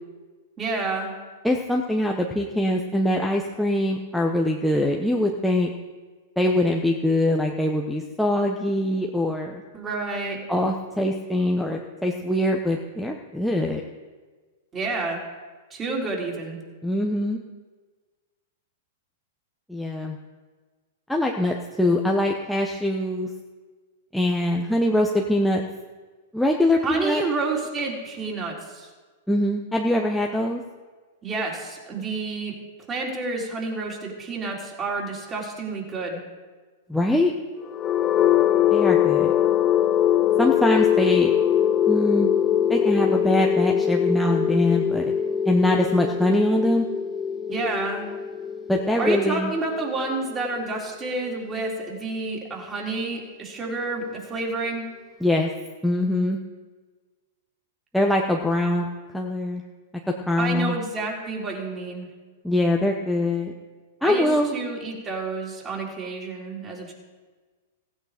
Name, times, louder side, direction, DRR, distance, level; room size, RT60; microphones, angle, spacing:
voice 1, 0.6-1.1 9.7-10.4 14.7-15.2 15.7-16.6 26.8-28.9 31.2-32.5 32.9-36.2 47.5-48.1 49.0-54.8 60.4-62.1 64.0-66.9, right 3 dB, 25° right, -2 dB, 3.9 m, -29 dB
voice 2, 1.4-5.7 6.4-9.6 10.5-13.8 16.8-17.4 19.7-20.2 21.1-23.3 24.1-25.6 26.3-27.2 29.3-30.6 36.9-37.3 38.7-39.3 40.4-41.3 41.9-42.3 42.7-45.1 45.5-46.9 48.7-49.5 55.2-55.5 55.8-56.4 57.9-58.9 59.1-59.6 60.3-60.7 62.4-63.5 64.0-64.5, left 1 dB, ahead, 0 dB, 1.0 m, -23 dB
sound 1, 37.7-51.6, left 9 dB, 30° left, 0.5 m, -22 dB
16.0 x 9.0 x 5.1 m, 1.4 s
hypercardioid pair, 105°, 0 cm